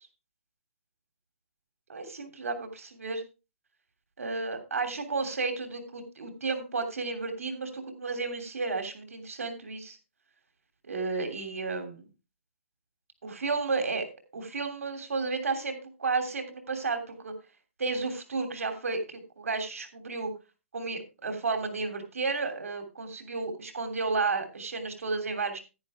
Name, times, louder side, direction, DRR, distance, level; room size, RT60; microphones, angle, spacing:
voice 1, 1.9-3.2 4.2-10.0 10.9-12.0 13.2-14.0 14.3-17.3 17.8-20.3 20.7-25.6, right 4 dB, 85° right, 7 dB, 3.0 m, -32 dB
10.5 x 10.0 x 3.5 m, 0.29 s
hypercardioid pair, 150°, 8 cm